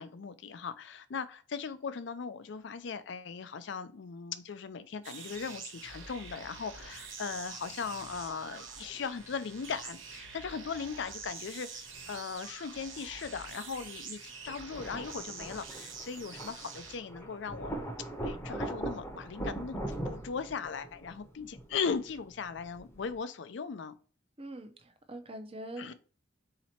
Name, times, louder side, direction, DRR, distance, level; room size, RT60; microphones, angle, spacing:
voice 1, 0.0-17.7 18.2-19.8 20.1-23.9 25.8-25.9, left 5 dB, 65° left, 0.4 m, -38 dB
sound 1, 5.0-17.0, right 5 dB, 85° right, 0.9 m, -46 dB
sound 2, 8.9-9.8 10.1-11.1 11.5-11.6 14.5-23.2, right 1 dB, 15° left, 0.8 m, -41 dB
voice 2, 24.4-25.9, right 1 dB, 30° right, 0.6 m, -43 dB
4.1 x 2.9 x 4.2 m
head